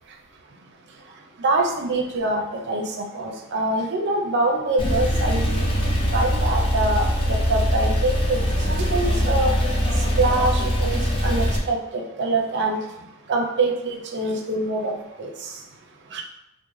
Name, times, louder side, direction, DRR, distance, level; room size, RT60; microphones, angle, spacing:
voice 1, 1.4-5.7 6.1-9.5 10.2-12.8 13.3-15.5 16.1-16.2, right 2 dB, 55° right, 0 dB, 0.5 m, -25 dB
Male speech man speaking / Car / Idling, 4.8-11.6, equal, 25° left, 0.6 m, -22 dB
3.1 x 2.0 x 3.6 m, 0.89 s
head